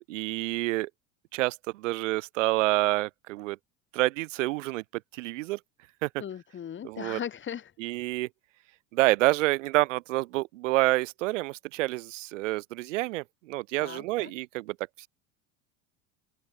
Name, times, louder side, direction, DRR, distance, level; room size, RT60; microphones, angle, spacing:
voice 1, 0.1-0.9 1.3-3.6 3.9-4.8 5.1-5.6 6.0-6.1 6.8-7.2 7.8-8.3 8.9-15.1, right 20 dB, 85° right, 2.2 m, -28 dB
voice 2, 6.2-7.7 13.8-14.3, left 9 dB, 30° left, 3.3 m, -38 dB
supercardioid pair, 115°, 36 cm